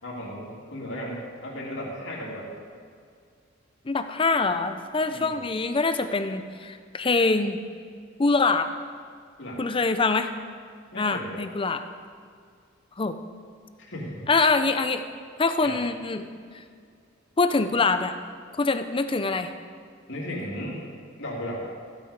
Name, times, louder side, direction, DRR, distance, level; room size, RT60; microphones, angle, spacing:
voice 1, 0.0-2.5 5.1-5.4 9.4-9.6 10.9-11.5 13.9-14.3 15.6-15.8 20.1-20.8 21.2-21.7, equal, 65° left, -4 dB, 2.9 m, -35 dB
voice 2, 3.9-7.6 8.2-8.7 9.6-10.3 11.0-11.8 13.0-13.2 14.3-15.0 15.4-16.2 17.4-18.2 18.6-19.5, left 3 dB, 25° left, 9 dB, 0.5 m, -24 dB
15.0 x 8.1 x 5.1 m, 2.1 s
head